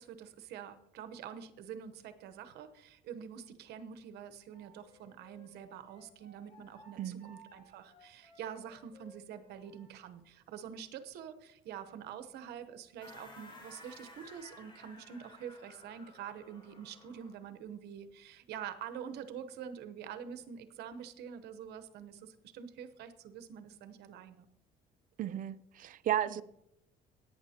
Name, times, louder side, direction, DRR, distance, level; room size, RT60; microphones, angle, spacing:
voice 1, 0.0-24.5 26.3-26.4, right 8 dB, 75° right, 0.9 m, -46 dB
Wind instrument woodwind instrument, 4.5-9.9, equal, 45° left, 4.3 m, -60 dB
voice 2, 7.0-7.3 25.2-26.4, right 11 dB, 55° right, 0.5 m, -34 dB
sound 1, 13.0-17.4, left 1 dB, 30° left, 4.3 m, -55 dB
17.5 x 9.4 x 2.9 m
cardioid pair, 110°, 17 cm